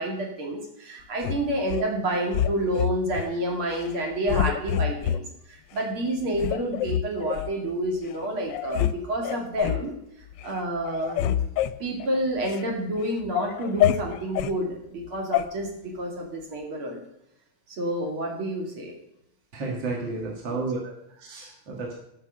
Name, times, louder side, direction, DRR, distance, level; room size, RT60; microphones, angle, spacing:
voice 1, 0.0-5.2 5.5-9.9 10.4-11.4 11.8-17.0 17.7-18.9, right 1 dB, 80° right, 0 dB, 3.3 m, -29 dB
sound 1, 1.2-1.9 2.3-3.3 3.7-3.9 4.3-5.2 5.8-5.9 6.4-7.5 8.1-8.2 8.5-9.0 9.2-9.9 10.3-10.6 10.8-12.7 13.0-14.6 15.3-15.5, left 11 dB, 75° left, 1.1 m, -27 dB
voice 2, 19.5-22.0, right 3 dB, 65° right, -1 dB, 2.6 m, -32 dB
13.0 x 6.1 x 6.5 m, 0.79 s
omnidirectional pair, 2.3 m